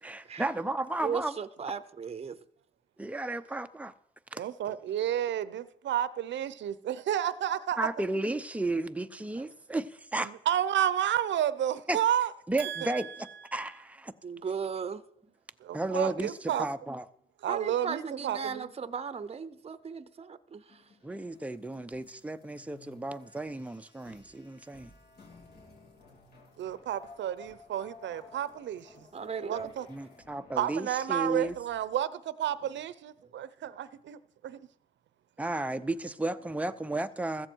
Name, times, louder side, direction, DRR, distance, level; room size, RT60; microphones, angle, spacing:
voice 1, 0.0-1.4 3.0-3.9 4.3-4.4 7.8-10.3 11.9-12.0 12.5-14.1 15.7-16.3 16.6-17.0 21.0-24.9 29.9-31.5 35.4-37.5, right 2 dB, 5° right, 0.8 m, -33 dB
voice 2, 1.0-2.4 14.2-15.0 17.5-20.6 29.1-29.7, right 6 dB, 30° right, 0.9 m, -36 dB
voice 3, 4.4-7.8 10.1-12.3 12.6-13.2 15.6-16.6 17.4-18.7 26.6-29.1 29.4-29.9 30.6-34.7, right 11 dB, 65° right, 0.8 m, -31 dB
sound 1, 20.7-31.9, left 4 dB, 55° left, 3.6 m, -56 dB
15.0 x 14.5 x 4.7 m
cardioid pair, 90°, 20 cm